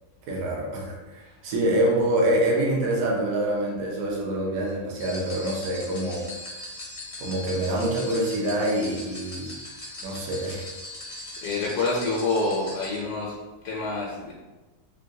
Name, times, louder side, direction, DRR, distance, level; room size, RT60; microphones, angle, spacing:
voice 1, 0.3-6.2 7.2-9.5 10.0-10.6, right 1 dB, 65° right, -3 dB, 1.1 m, -26 dB
sound 1, 5.0-13.0, left 1 dB, 40° left, 0.5 m, -40 dB
voice 2, 11.4-13.3 13.6-14.3, left 3 dB, 75° left, -3 dB, 1.1 m, -27 dB
3.7 x 2.2 x 2.6 m, 1.1 s
omnidirectional pair, 1.7 m